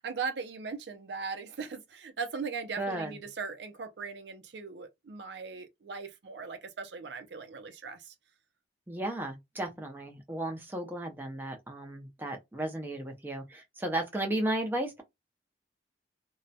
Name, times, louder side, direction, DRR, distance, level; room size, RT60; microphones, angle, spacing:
voice 1, 0.0-8.1, right 5 dB, 80° right, 0.5 m, -39 dB
voice 2, 2.8-3.2 8.9-15.0, right 1 dB, 10° right, 0.5 m, -34 dB
2.2 x 2.1 x 2.6 m
head